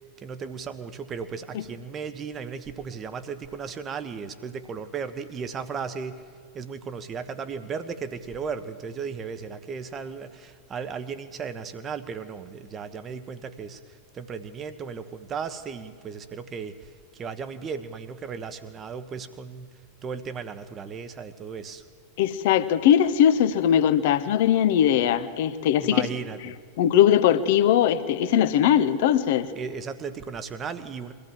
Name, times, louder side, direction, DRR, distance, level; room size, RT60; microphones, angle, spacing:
voice 1, 0.2-6.3 6.5-21.8 25.8-26.5 29.5-31.1, right 6 dB, 25° right, 11 dB, 1.3 m, -36 dB
voice 2, 22.2-26.0 26.8-29.5, left 10 dB, 50° left, 12 dB, 1.0 m, -20 dB
23.0 x 15.5 x 7.5 m, 2.1 s
figure-of-eight pair, 90°, 0 cm